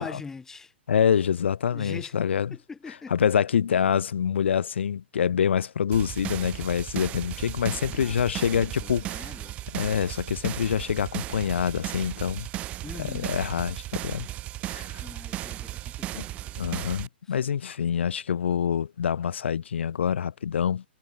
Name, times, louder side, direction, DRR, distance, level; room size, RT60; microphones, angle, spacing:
voice 1, 0.0-0.7 1.7-2.1 2.5-3.3 7.9-8.2 8.5-9.6 12.8-13.4 14.9-16.6 17.3-17.4, left 4 dB, 5° left, 7.4 m, -43 dB
voice 2, 0.9-2.6 2.9-9.3 9.7-12.5 13.0-14.3 14.7-15.0 16.1-16.2 16.6-20.8, left 8 dB, 80° left, 2.4 m, -26 dB
sound 1, 5.9-17.1, right 14 dB, 20° right, 6.0 m, -36 dB
hypercardioid pair, 160°, 6 cm